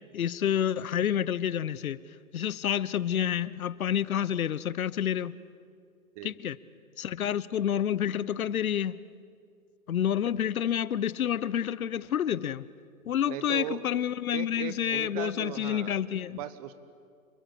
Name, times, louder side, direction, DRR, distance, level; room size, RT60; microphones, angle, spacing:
voice 1, 0.1-2.0 2.3-5.4 6.2-6.6 7.0-9.0 9.9-12.6 13.1-16.4, left 9 dB, 80° left, 1.0 m, -29 dB
voice 2, 13.2-13.8 14.3-15.9 16.3-16.7, right 11 dB, 25° right, 1.2 m, -38 dB
28.5 x 21.5 x 7.8 m
hypercardioid pair, 155°, 42 cm